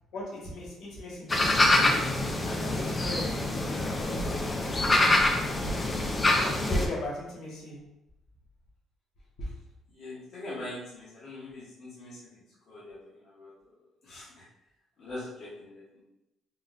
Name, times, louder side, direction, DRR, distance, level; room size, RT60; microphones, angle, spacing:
voice 1, 0.1-2.0 2.4-4.4 6.4-7.8, left 2 dB, 70° left, -4 dB, 1.2 m, -39 dB
sound 1, 1.3-6.9, left 1 dB, 15° left, 0.3 m, -25 dB
voice 2, 9.9-13.6 14.0-14.4 15.0-16.0, left 1 dB, 50° left, -8 dB, 0.7 m, -42 dB
3.7 x 2.1 x 2.3 m, 0.90 s
cardioid pair, 160°, 0 cm